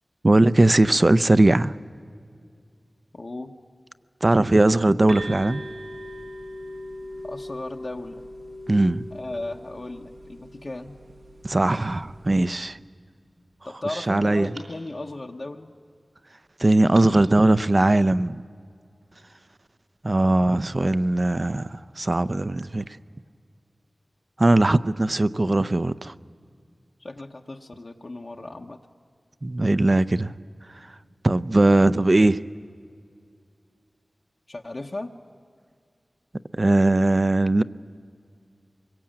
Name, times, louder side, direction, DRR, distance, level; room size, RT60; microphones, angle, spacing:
voice 1, 0.2-1.7 4.2-5.6 8.7-9.0 11.4-12.8 13.9-14.5 16.6-18.4 20.0-21.7 22.0-22.8 24.4-26.1 29.4-30.3 31.2-32.4 36.5-37.6, right 2 dB, 40° right, 0.6 m, -19 dB
voice 2, 3.1-3.5 7.2-8.2 9.1-11.0 13.6-15.7 27.0-28.8 34.5-35.2, left 2 dB, 50° left, 1.0 m, -36 dB
sound 1, 5.1-12.6, equal, 90° right, 1.9 m, -40 dB
sound 2, 12.6-13.8 14.4-16.1 16.9-18.5, right 2 dB, 75° right, 4.2 m, -51 dB
24.0 x 22.5 x 8.8 m
wide cardioid pair, 75°, 0 cm